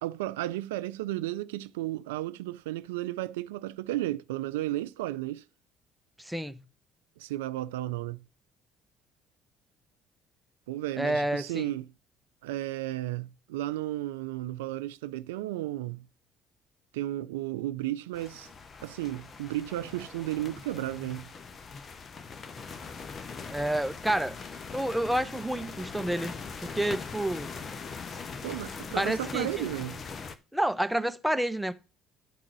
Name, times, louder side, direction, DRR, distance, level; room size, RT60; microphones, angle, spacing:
voice 1, 0.0-5.4 7.2-8.2 10.7-11.8 12.4-16.1 16.9-18.5 18.8-21.3 28.4-30.0, right 15 dB, 85° right, 0.4 m, -33 dB
voice 2, 6.2-6.6 11.0-11.7 23.5-24.4 24.7-26.4 26.6-27.5 28.9-29.7 30.5-31.7, right 1 dB, 5° right, 0.9 m, -29 dB
sound 1, 18.1-30.4, left 5 dB, 45° left, 0.9 m, -41 dB
11.0 x 3.9 x 6.0 m
hypercardioid pair, 60°, 0 cm